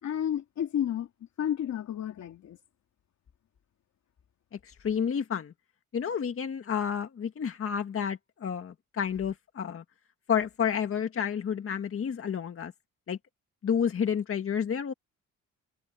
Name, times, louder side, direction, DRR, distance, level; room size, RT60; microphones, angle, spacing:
voice 1, 0.0-1.1 1.4-2.6, left 10 dB, 65° left, 2.4 m, -31 dB
voice 2, 4.5-5.5 5.9-9.8 10.3-12.7 13.1-13.2 13.6-14.9, left 7 dB, 45° left, 1.8 m, -30 dB
cardioid pair, 90°, 30 cm